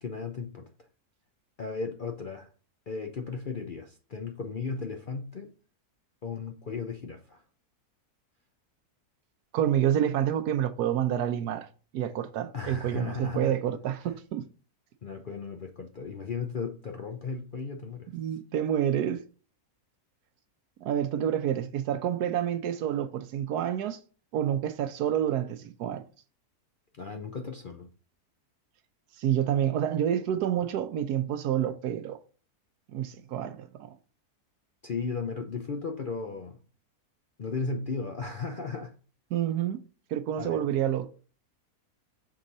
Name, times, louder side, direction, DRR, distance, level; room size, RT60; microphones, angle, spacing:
voice 1, 0.0-0.7 1.6-2.5 2.9-5.5 6.2-7.4 12.5-13.5 15.0-18.3 27.0-27.9 34.8-36.6 37.4-38.9 40.4-40.7, left 4 dB, 55° left, 0.5 m, -35 dB
voice 2, 9.5-11.7 11.9-14.4 18.1-19.2 20.8-24.0 24.3-26.0 29.2-32.2 32.9-34.0 39.3-39.8 40.1-41.1, right 10 dB, 85° right, 1.2 m, -28 dB
6.3 x 3.8 x 4.1 m
omnidirectional pair, 1.7 m